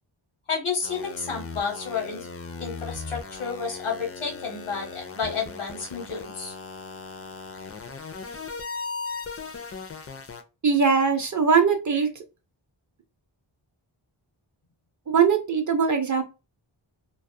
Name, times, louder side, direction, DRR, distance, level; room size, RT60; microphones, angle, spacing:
voice 1, 0.5-2.3 2.6-6.5, left 5 dB, 85° left, 1 dB, 1.0 m, -31 dB
sound 1, 0.8-10.4, left 4 dB, 30° left, 0.4 m, -38 dB
voice 2, 10.6-12.1 15.1-16.2, right 6 dB, 40° right, 6 dB, 0.5 m, -21 dB
2.3 x 2.0 x 2.6 m, 0.29 s
wide cardioid pair, 50°, 49 cm